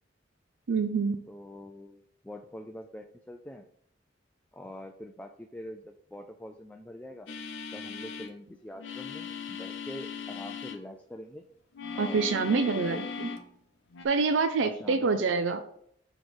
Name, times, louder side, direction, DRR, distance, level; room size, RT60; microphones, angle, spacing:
voice 1, 0.7-1.2 12.0-13.3 14.0-15.6, right 4 dB, 85° right, 7 dB, 0.5 m, -26 dB
voice 2, 1.3-3.7 4.5-7.3 7.7-11.4 11.9-12.6 12.9-13.0 14.6-15.5, left 1 dB, 10° left, 4 dB, 0.4 m, -45 dB
sound 1, 7.3-8.3 8.8-10.8 11.7-13.5 13.9-14.1, left 6 dB, 75° left, 0.8 m, -38 dB
6.2 x 3.1 x 5.2 m, 0.68 s
head